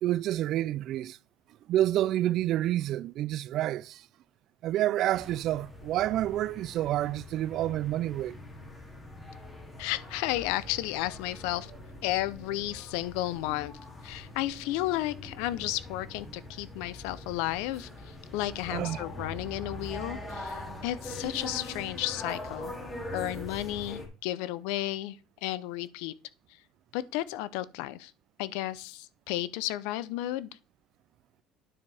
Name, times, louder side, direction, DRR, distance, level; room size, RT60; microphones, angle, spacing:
voice 1, 0.0-1.2 1.7-4.0 4.6-8.4 18.7-19.0, right 13 dB, 60° right, 0.3 m, -28 dB
sound 1, 5.1-24.1, left 1 dB, 15° left, 2.6 m, -43 dB
voice 2, 9.8-11.7 12.0-13.7 14.0-22.7 23.1-26.1 26.9-28.1 28.4-30.5, left 15 dB, 90° left, 0.6 m, -33 dB
9.7 x 6.9 x 3.4 m
cardioid pair, 120°, 0 cm